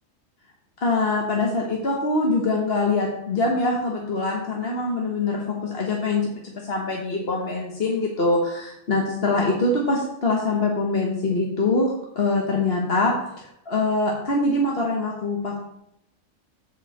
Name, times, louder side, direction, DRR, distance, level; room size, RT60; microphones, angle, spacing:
voice 1, 0.8-13.1 13.4-15.6, left 2 dB, 50° left, -1 dB, 1.5 m, -24 dB
7.9 x 4.3 x 7.1 m, 0.77 s
omnidirectional pair, 1.4 m